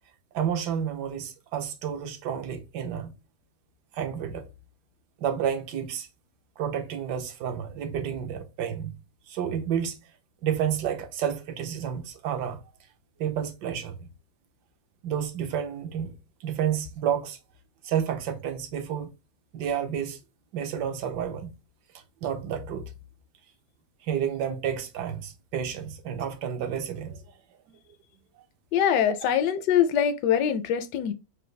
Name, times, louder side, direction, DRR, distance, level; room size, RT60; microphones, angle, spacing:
voice 1, 0.3-3.1 3.9-4.5 5.2-6.1 6.6-9.0 9.3-10.0 10.4-12.6 13.2-14.1 15.0-16.2 16.4-17.4 17.8-19.1 19.5-20.2 20.5-21.5 22.2-22.9 24.0-27.2 27.7-27.8, right 8 dB, 75° right, 1.3 m, -30 dB
voice 2, 28.7-31.1, left 9 dB, 75° left, 1.2 m, -23 dB
5.1 x 2.3 x 3.2 m
omnidirectional pair, 1.9 m